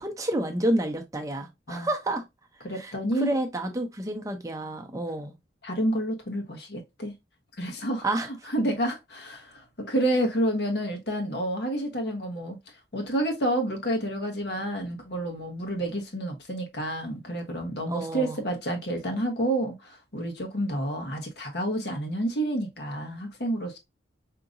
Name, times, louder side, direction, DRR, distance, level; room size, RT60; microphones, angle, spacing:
voice 1, 0.0-2.2 2.7-5.3 8.0-8.3 17.9-18.4, right 1 dB, 15° right, 0.7 m, -29 dB
voice 2, 2.6-3.3 5.6-7.1 7.6-8.0 8.5-12.6 12.9-23.8, right 1 dB, 60° left, 1.1 m, -29 dB
5.0 x 2.9 x 2.5 m
head